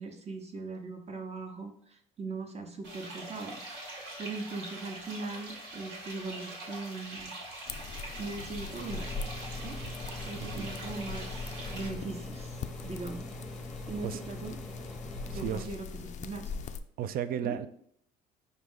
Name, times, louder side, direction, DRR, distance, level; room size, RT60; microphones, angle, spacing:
voice 1, 0.0-3.6 3.9-7.3 8.2-9.1 9.6-9.8 10.3-13.3 13.9-14.6 15.2-16.5 17.4-17.6, right 3 dB, 35° right, 0.8 m, -40 dB
sound 1, 2.8-11.9, right 1 dB, 70° right, 1.4 m, -43 dB
sound 2, 7.7-16.8, left 5 dB, 40° left, 0.4 m, -41 dB
sound 3, 8.8-15.7, left 1 dB, ahead, 0.9 m, -43 dB
voice 2, 10.4-10.7 14.0-14.2 15.3-15.7 17.0-17.7, right 9 dB, 50° right, 0.4 m, -34 dB
4.8 x 2.7 x 3.6 m
hypercardioid pair, 70°, 20 cm